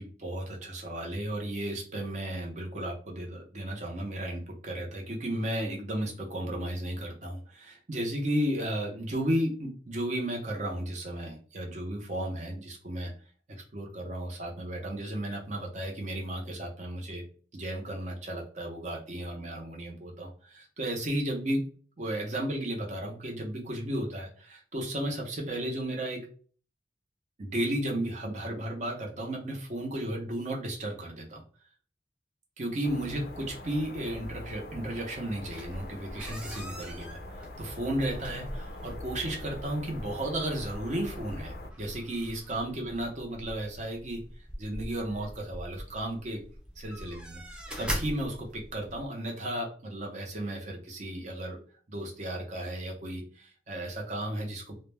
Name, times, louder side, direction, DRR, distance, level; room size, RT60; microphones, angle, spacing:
voice 1, 0.0-13.1 13.5-17.2 17.5-21.6 22.0-26.3 27.4-31.4 32.6-44.2 44.6-46.4 46.8-51.6 51.9-54.7, right 1 dB, 40° right, 0 dB, 0.6 m, -34 dB
sound 1, 32.8-41.7, left 1 dB, 55° left, 0.4 m, -44 dB
sound 2, 35.4-49.1, equal, 5° right, 0.4 m, -42 dB
2.2 x 2.1 x 3.2 m, 0.42 s
head